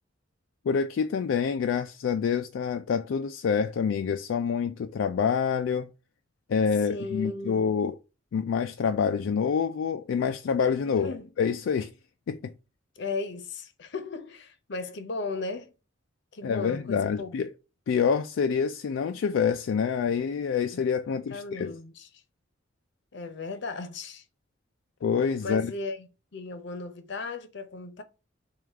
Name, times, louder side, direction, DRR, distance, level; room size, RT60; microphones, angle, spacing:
voice 1, 0.7-5.9 6.5-8.0 8.3-11.1 11.4-11.9 12.3-12.5 16.4-17.5 17.9-21.7 25.0-25.7, left 6 dB, 80° left, 0.3 m, -27 dB
voice 2, 6.8-7.7 10.8-11.3 13.0-15.7 16.3-17.3 20.7-22.2 23.1-24.2 25.4-28.0, left 3 dB, 65° left, 0.7 m, -36 dB
4.8 x 2.4 x 3.4 m
head